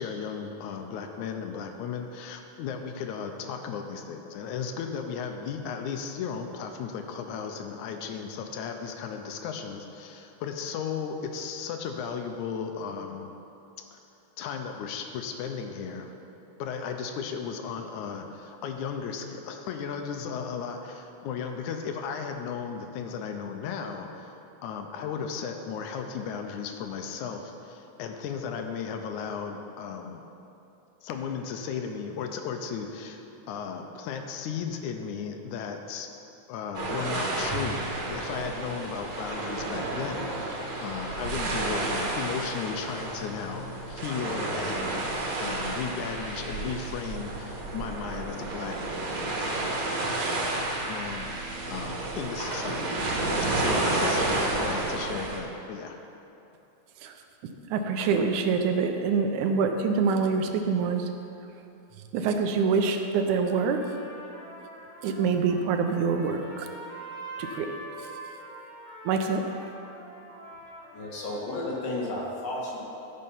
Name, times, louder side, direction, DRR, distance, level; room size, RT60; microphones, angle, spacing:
voice 1, 0.0-13.3 13.9-14.0 14.4-16.1 16.6-30.3 31.0-36.1 36.5-45.1 45.4-48.8 50.9-53.0 53.5-56.0, left 6 dB, 85° left, 5 dB, 2.1 m, -35 dB
sound 1, 36.7-55.4, right 2 dB, 65° right, 2.5 m, -31 dB
voice 2, 57.7-61.1 62.1-63.9 65.0-66.7 67.4-67.8 69.1-69.4, right 5 dB, 80° right, 5 dB, 2.1 m, -25 dB
Trumpet, 63.3-71.8, right 1 dB, 20° left, 2.3 m, -45 dB
voice 3, 70.9-72.8, left 2 dB, 60° left, -4 dB, 2.7 m, -32 dB
14.5 x 5.5 x 5.6 m, 2.9 s
omnidirectional pair, 3.5 m